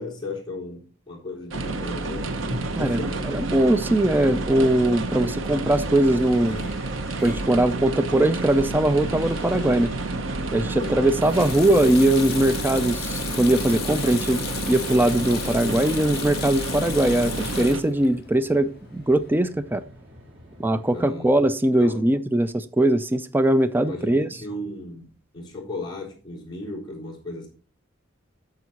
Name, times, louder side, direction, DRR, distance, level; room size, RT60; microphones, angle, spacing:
voice 1, 0.0-3.4 10.7-11.1 20.9-21.3 21.8-22.0 23.8-25.1 25.3-27.5, left 2 dB, 20° left, 4.0 m, -35 dB
sound 1, 1.5-17.8, right 2 dB, 70° right, 0.9 m, -30 dB
voice 2, 2.8-6.6 7.2-9.9 10.5-19.8 20.6-24.3, right 1 dB, 10° right, 0.4 m, -21 dB
Sink (filling or washing), 5.6-19.3, left 10 dB, 50° left, 1.1 m, -38 dB
sound 2, 12.6-21.1, equal, 90° right, 3.0 m, -49 dB
9.1 x 6.7 x 4.2 m
head